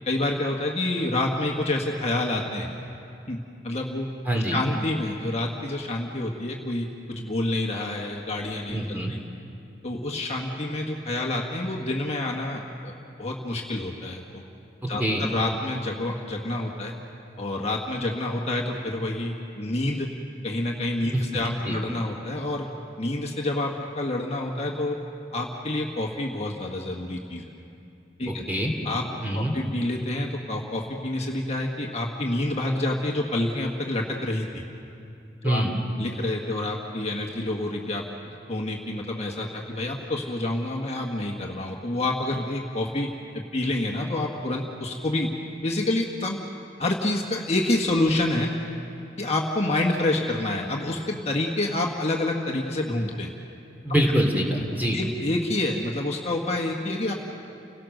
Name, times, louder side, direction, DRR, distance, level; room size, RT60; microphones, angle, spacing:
voice 1, 0.0-2.7 3.3-3.4 3.6-4.1 4.3-9.2 9.8-12.9 13.2-14.4 14.9-16.9 17.4-20.1 20.4-22.7 23.0-25.0 25.3-27.4 28.2-28.4 28.8-29.0 29.3-34.6 35.4-35.6 36.0-43.1 43.3-45.3 45.6-46.4 46.8-48.5 49.2-53.3 54.9-57.1, left 1 dB, 35° left, 0 dB, 1.5 m, -28 dB
voice 2, 8.7-9.1 15.0-15.2 21.1-21.8 28.5-28.7 29.2-29.5 35.4-35.7 53.8-55.0, equal, 10° right, 0 dB, 2.6 m, -24 dB
30.0 x 18.0 x 6.5 m, 2.7 s
head